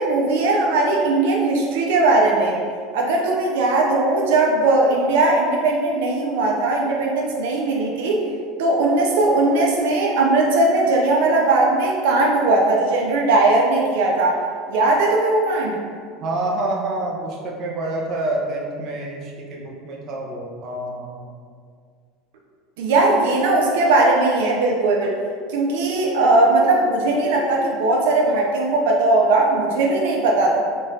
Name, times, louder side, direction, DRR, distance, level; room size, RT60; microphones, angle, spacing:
voice 1, 0.0-2.6 2.9-8.2 8.6-14.4 14.7-15.8 22.8-25.2 25.5-30.6, right 2 dB, 85° right, -1 dB, 0.5 m, -18 dB
voice 2, 16.2-21.3, right 2 dB, 45° right, -1 dB, 0.6 m, -27 dB
3.8 x 2.4 x 4.0 m, 2.1 s
supercardioid pair, 140°, 0 cm